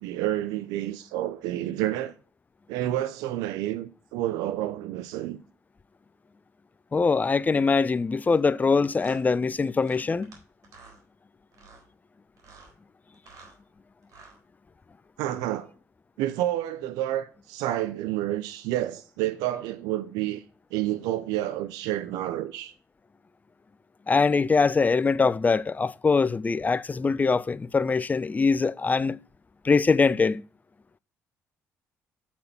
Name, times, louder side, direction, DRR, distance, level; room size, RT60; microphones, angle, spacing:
voice 1, 0.0-2.1 2.7-5.4 15.2-15.7 16.2-20.4 20.7-22.7, right 13 dB, 80° right, 0.5 m, -29 dB
voice 2, 6.9-10.4 24.1-29.2 29.6-30.4, left 4 dB, 25° left, 0.4 m, -23 dB
sound 1, 8.2-8.4 9.0-9.2 9.8-10.4 10.6-11.0 11.5-11.8 12.4-12.7 13.1-13.6 14.0-14.4, right 4 dB, 60° right, 3.7 m, -51 dB
8.4 x 4.3 x 5.6 m
supercardioid pair, 65°, 6 cm